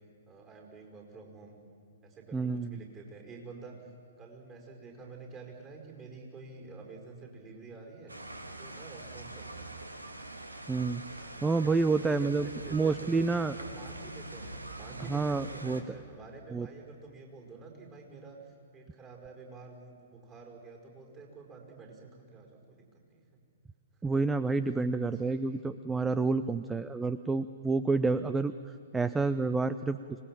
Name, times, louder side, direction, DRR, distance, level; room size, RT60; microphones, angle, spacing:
voice 1, 0.3-1.6 2.0-3.8 4.2-8.1 8.6-9.7 11.0-13.1 13.6-23.2 25.0-25.6, right 4 dB, 25° right, 1 dB, 5.2 m, -49 dB
voice 2, 2.3-2.8 10.7-13.6 15.1-15.8 16.5-16.7 24.0-28.5 28.9-30.0, right 3 dB, 10° right, 13 dB, 0.5 m, -29 dB
sound 1, 8.1-15.8, right 2 dB, 85° right, 1.8 m, -44 dB
25.5 x 19.5 x 7.6 m, 2.4 s
figure-of-eight pair, 115°, 0 cm